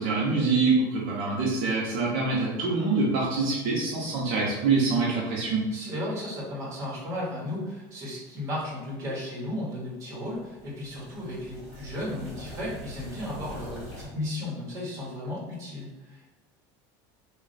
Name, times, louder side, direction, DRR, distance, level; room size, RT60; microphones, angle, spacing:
voice 1, 0.0-5.6, right 3 dB, 60° right, -5 dB, 0.9 m, -25 dB
voice 2, 5.7-16.3, left 1 dB, 30° right, -5 dB, 1.2 m, -35 dB
sound 1, 10.2-14.0, equal, 5° left, 1.4 m, -44 dB
3.2 x 2.5 x 4.0 m, 1.1 s
cardioid pair, 160°, 11 cm